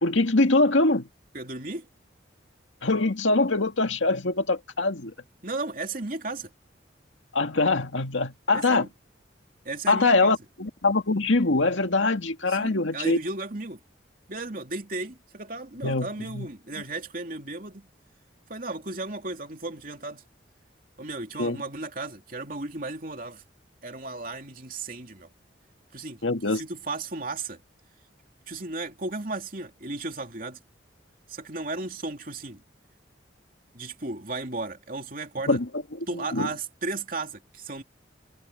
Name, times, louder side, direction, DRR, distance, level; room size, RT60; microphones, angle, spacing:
voice 1, 0.0-1.1 2.8-5.1 7.3-8.9 9.9-13.2 15.8-16.5 21.4-21.6 26.2-26.6 35.5-35.7 36.3-36.5, left 2 dB, 80° left, 2.0 m, -23 dB
voice 2, 1.3-1.9 5.4-6.5 8.5-8.9 9.6-10.4 12.5-13.8 14.3-17.9 18.5-20.2 21.0-23.4 23.8-25.3 25.9-26.2 26.5-27.6 28.5-30.6 31.3-32.6 33.7-35.6 36.1-37.8, right 3 dB, 45° right, 3.0 m, -35 dB
head